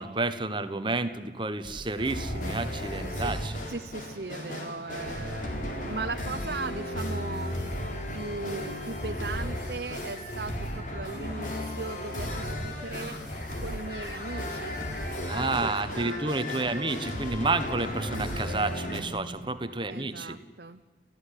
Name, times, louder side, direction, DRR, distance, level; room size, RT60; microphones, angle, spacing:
voice 1, 0.0-3.5 15.2-20.4, right 3 dB, 25° right, 11 dB, 1.2 m, -30 dB
sound 1, 1.6-19.0, left 1 dB, 45° left, 4.1 m, -34 dB
voice 2, 3.7-5.5 5.9-7.6 8.1-13.2 13.6-14.8 15.3-17.1 19.9-20.8, right 3 dB, 65° right, 7 dB, 0.8 m, -38 dB
29.0 x 15.5 x 10.0 m, 1.4 s
head